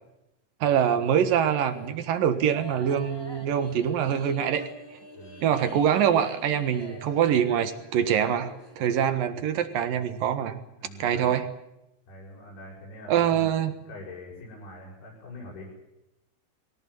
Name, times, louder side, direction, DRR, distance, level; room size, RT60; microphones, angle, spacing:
voice 1, 0.6-4.6 4.9-5.0 5.4-10.6 11.0-11.5 13.1-13.7, right 9 dB, 60° right, 10 dB, 2.7 m, -24 dB
sound 1, 0.9-8.9, equal, 5° left, 3.4 m, -45 dB
voice 2, 5.2-5.5 10.8-11.4 12.1-13.6 13.9-15.7, left 1 dB, 60° left, -4 dB, 9.4 m, -43 dB
23.0 x 18.5 x 8.6 m, 0.90 s
omnidirectional pair, 5.4 m